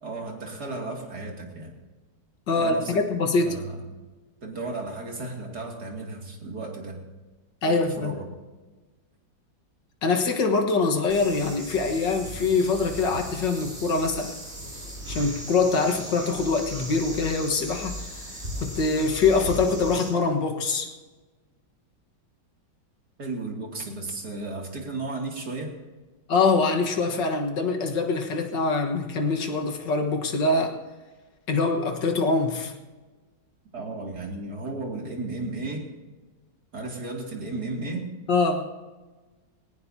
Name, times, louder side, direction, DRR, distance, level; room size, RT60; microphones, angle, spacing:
voice 1, 0.0-1.7 2.6-3.0 3.4-3.8 4.4-7.0 7.7-8.3 23.2-25.7 33.7-35.9 36.7-38.1, right 2 dB, 60° right, 0 dB, 3.2 m, -34 dB
voice 2, 2.5-3.6 7.6-8.1 10.0-14.3 15.1-18.3 18.6-20.9 26.3-30.8 31.5-32.7 38.3-38.7, left 3 dB, 80° left, 4 dB, 2.2 m, -24 dB
sound 1, 11.1-20.1, equal, 35° right, 6.6 m, -37 dB
21.0 x 18.5 x 2.8 m, 1.3 s
omnidirectional pair, 1.9 m